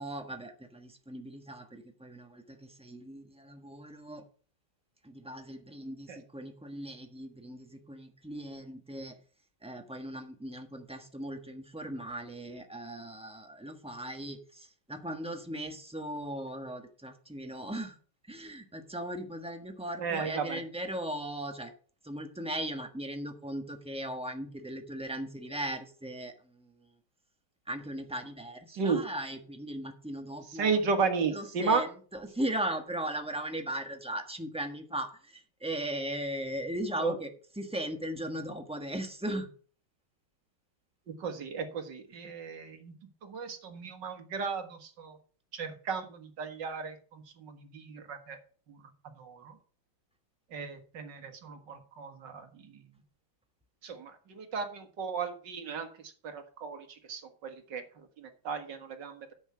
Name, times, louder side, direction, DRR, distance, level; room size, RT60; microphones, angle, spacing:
voice 1, 0.0-4.2 5.0-9.2 9.6-18.0 18.3-21.7 22.0-26.7 27.7-30.8 31.3-31.9 32.3-37.3 37.6-39.5, right 1 dB, 5° right, 5 dB, 1.0 m, -38 dB
voice 2, 20.0-20.6 28.7-29.0 30.5-31.8 37.0-37.2 41.2-42.9 43.2-45.2 45.5-48.4 48.7-48.8 49.2-49.5 50.5-52.8 53.8-55.9 56.2-57.8 58.2-59.3, right 5 dB, 60° right, 6 dB, 2.2 m, -34 dB
9.9 x 7.2 x 5.6 m, 0.42 s
omnidirectional pair, 2.3 m